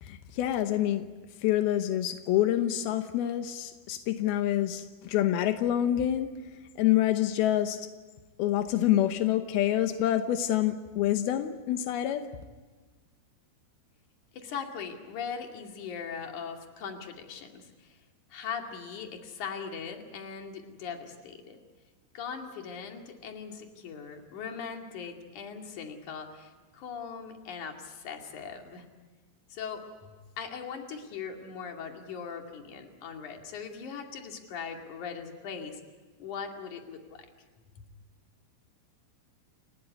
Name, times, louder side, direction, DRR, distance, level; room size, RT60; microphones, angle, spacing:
voice 1, 0.0-1.1 1.4-6.3 6.8-7.9 8.4-12.3, left 12 dB, 85° left, 8 dB, 2.1 m, -27 dB
voice 2, 14.3-17.9 18.3-21.6 22.1-28.8 29.5-35.8 36.2-37.3, left 6 dB, 45° left, 3 dB, 3.0 m, -40 dB
29.0 x 17.0 x 9.6 m, 1.4 s
omnidirectional pair, 5.8 m